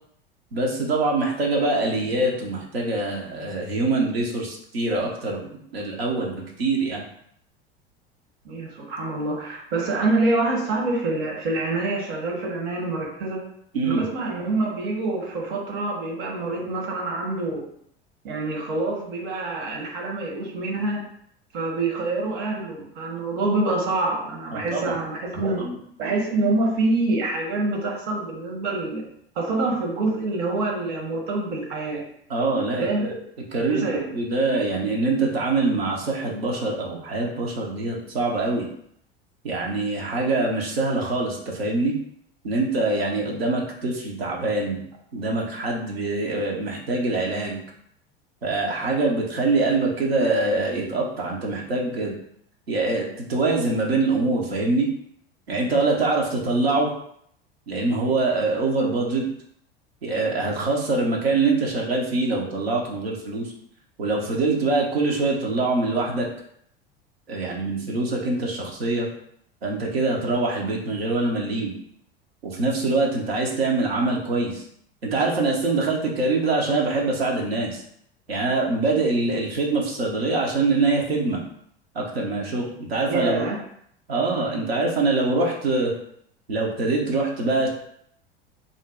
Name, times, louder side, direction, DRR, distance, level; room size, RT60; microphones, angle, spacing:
voice 1, 0.5-7.0 13.7-14.0 24.5-24.9 25.6-25.7 32.3-33.1 33.5-38.7 39.4-42.0 42.4-44.8 45.1-47.6 48.4-52.1 52.7-54.9 55.5-56.9 57.7-59.3 60.0-63.5 64.0-66.3 67.3-69.1 69.6-71.7 72.4-74.6 75.0-77.8 78.3-81.4 81.9-83.5 84.1-85.9 86.5-87.7, right 3 dB, 80° right, -1 dB, 0.8 m, -24 dB
voice 2, 8.4-13.5 13.8-17.7 18.2-21.1 21.5-25.6 26.0-29.0 29.4-32.0 32.8-33.1 33.7-34.0 83.1-83.6, right 2 dB, 55° right, 0 dB, 0.9 m, -26 dB
2.6 x 2.1 x 3.5 m, 0.69 s
figure-of-eight pair, 80°, 30 cm